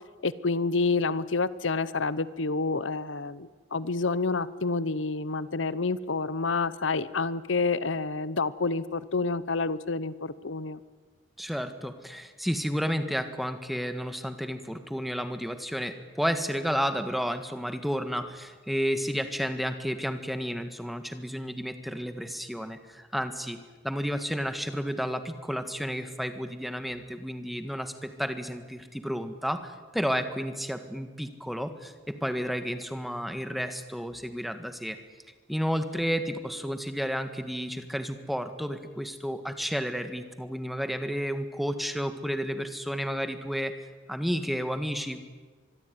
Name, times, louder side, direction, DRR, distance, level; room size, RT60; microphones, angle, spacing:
voice 1, 0.2-10.8, left 3 dB, 75° left, 16 dB, 0.9 m, -28 dB
voice 2, 11.4-23.6 23.8-35.0 35.5-45.2, equal, ahead, 8 dB, 1.7 m, -32 dB
25.0 x 22.0 x 9.5 m, 1.4 s
head